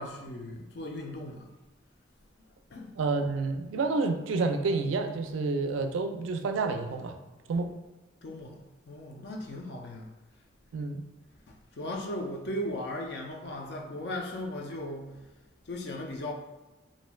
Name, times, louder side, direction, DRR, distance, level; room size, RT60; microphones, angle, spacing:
voice 1, 0.0-1.5 2.7-2.9 7.5-7.6 8.2-8.6 8.9-10.1 11.5-15.1 15.7-16.3, left 1 dB, 55° left, 2 dB, 0.4 m, -37 dB
voice 2, 3.0-7.2 7.5-7.7 10.7-11.0, right 3 dB, 80° right, 5 dB, 0.3 m, -29 dB
3.1 x 2.5 x 2.2 m, 1.1 s
head